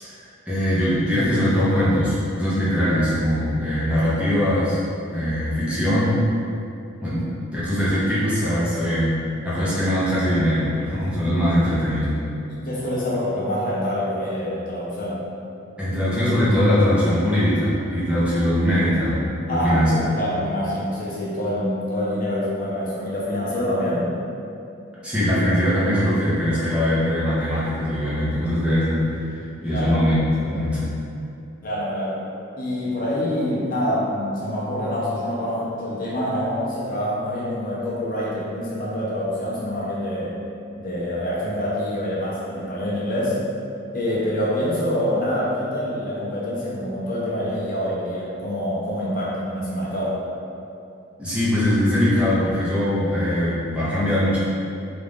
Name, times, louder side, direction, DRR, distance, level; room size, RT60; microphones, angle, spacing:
voice 1, 0.0-4.8 5.1-6.2 7.0-9.1 9.4-12.1 15.8-19.2 19.5-20.1 25.0-29.2 29.6-30.8 51.2-54.4, equal, 5° right, -11 dB, 0.7 m, -21 dB
voice 2, 12.5-15.2 19.5-24.1 29.7-30.0 31.6-32.2 32.6-40.4 40.7-43.4 43.9-50.2, left 1 dB, 40° left, -7 dB, 0.7 m, -26 dB
3.9 x 2.4 x 3.5 m, 2.6 s
head